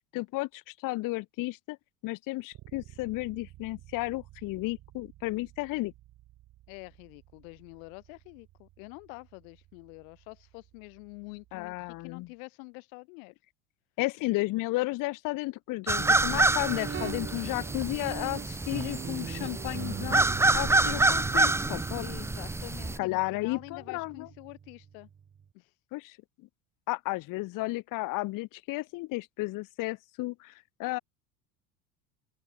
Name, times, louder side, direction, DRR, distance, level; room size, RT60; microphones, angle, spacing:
voice 1, 0.1-1.8 2.0-5.9 11.5-12.3 14.0-20.3 20.5-22.1 23.0-24.3 25.9-26.2 26.9-31.0, left 21 dB, 45° left, 0.9 m, -33 dB
Bass guitar, 2.5-12.3, right 16 dB, 50° right, 4.4 m, -55 dB
voice 2, 6.7-13.3 22.0-25.1 25.5-25.8, left 35 dB, 60° left, 6.9 m, -47 dB
sound 1, 15.9-23.0, right 2 dB, 5° right, 0.7 m, -27 dB
Guitar, 16.0-25.4, right 7 dB, 25° right, 2.0 m, -41 dB
open air
hypercardioid pair, 80°, 46 cm